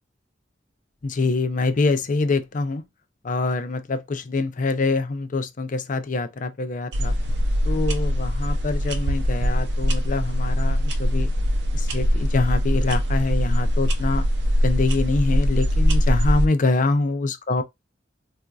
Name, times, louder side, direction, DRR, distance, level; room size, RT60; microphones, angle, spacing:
voice 1, 1.0-2.8 3.2-7.1 7.6-11.3 11.7-14.3 14.6-17.6, left 3 dB, 45° left, 0.5 m, -25 dB
sound 1, 6.9-16.5, equal, 70° right, 0.6 m, -22 dB
4.2 x 2.5 x 2.3 m
head